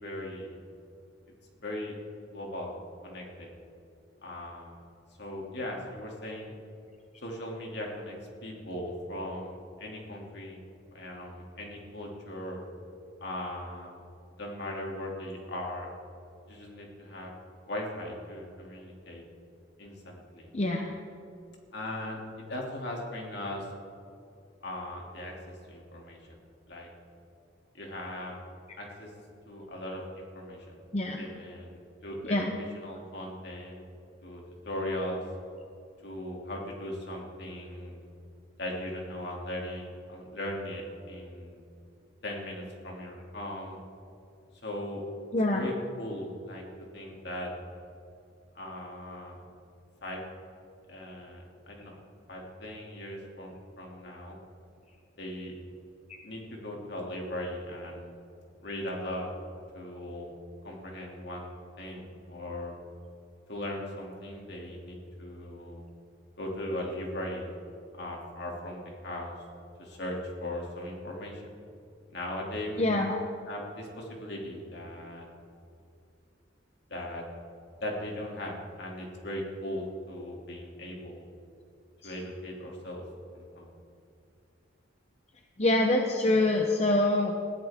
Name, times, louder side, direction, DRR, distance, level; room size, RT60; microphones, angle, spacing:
voice 1, 0.0-0.6 1.6-2.0 2.3-2.8 3.0-3.5 4.2-4.8 5.2-6.5 7.2-8.1 8.4-10.6 10.9-12.6 13.2-14.0 14.4-15.9 16.5-17.3 17.7-19.2 19.8-20.5 21.7-23.7 24.6-26.4 26.7-26.9 27.7-28.3 28.8-29.1 29.5-30.8 31.2-33.8 34.2-35.2 36.0-38.0 38.6-41.6 42.2-43.8 44.6-45.0 45.5-46.6 46.9-47.5 48.5-49.4 50.0-50.2 50.9-51.9 52.3-54.4 55.2-55.6 56.2-58.2 58.6-59.3 59.7-60.3 60.6-62.7 63.5-65.8 66.4-67.6 67.9-69.3 69.8-71.4 72.1-73.1 73.5-75.3 76.9-77.2 77.8-81.2 82.0-83.0 83.3-83.7, left 1 dB, 60° left, -1 dB, 2.8 m, -38 dB
voice 2, 20.5-20.9 30.9-31.3 32.2-32.6 45.3-45.6 72.8-73.2 82.0-82.1 85.6-87.3, left 2 dB, 35° left, 2 dB, 0.9 m, -25 dB
20.5 x 14.5 x 3.7 m, 2.6 s
head